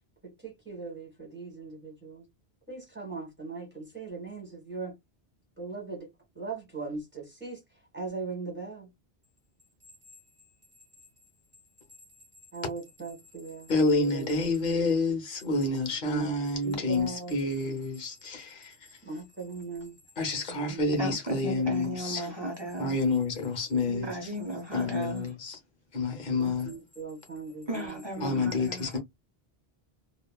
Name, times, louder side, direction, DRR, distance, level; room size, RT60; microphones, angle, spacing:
voice 1, 0.2-2.2 2.7-5.0 5.6-6.1 6.3-7.6 7.9-8.9 12.5-14.8 16.0-16.3 16.6-17.3 19.0-20.0 20.6-21.0 21.3-21.4 22.3-22.4 23.9-24.2 26.4-28.5, right 3 dB, 10° right, 1.3 m, -39 dB
voice 2, 13.7-18.7 20.2-22.3 22.8-24.3 24.7-25.6 25.9-26.7 28.2-29.0, left 3 dB, 55° left, 1.1 m, -28 dB
voice 3, 21.0-23.0 24.0-25.3 27.7-29.0, right 1 dB, 30° right, 0.6 m, -36 dB
3.0 x 2.3 x 2.2 m
omnidirectional pair, 1.1 m